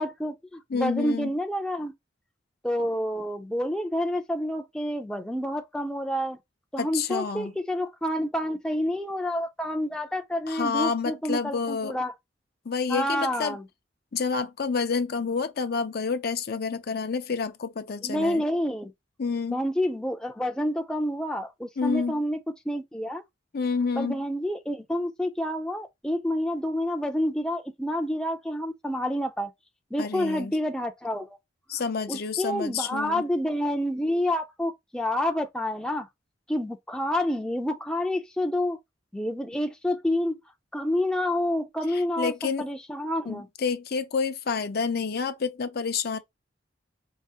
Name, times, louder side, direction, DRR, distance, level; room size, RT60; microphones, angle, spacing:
voice 1, 0.0-1.9 2.6-6.4 6.7-12.1 12.9-13.6 18.0-18.9 19.5-22.4 22.7-23.2 24.0-29.5 29.9-31.4 32.1-36.1 36.5-38.8 39.1-40.4 40.7-43.5, left 1 dB, 5° left, 0.5 m, -28 dB
voice 2, 0.7-1.3 6.8-7.5 10.5-12.0 12.7-13.6 14.1-18.4 19.2-19.6 21.8-22.2 23.5-24.2 30.0-30.6 31.7-33.2 41.9-42.7 43.3-46.2, left 5 dB, 60° left, 0.6 m, -29 dB
4.7 x 2.5 x 2.8 m
head